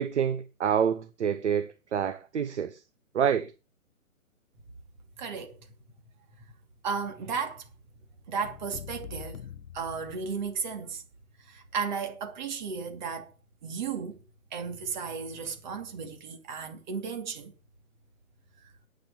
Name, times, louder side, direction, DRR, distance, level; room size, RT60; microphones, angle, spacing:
voice 1, 0.0-2.8 3.1-3.5, right 8 dB, 55° right, 1.1 m, -27 dB
voice 2, 5.2-5.6 6.8-7.7 8.3-9.4 9.7-11.0 11.4-13.3 13.6-14.2 14.5-17.5 18.6-18.7, right 6 dB, 30° right, 2.6 m, -34 dB
sound 1, 8.4-10.7, left 8 dB, 80° left, 1.1 m, -44 dB
9.7 x 8.8 x 6.1 m
hypercardioid pair, 165°, 42 cm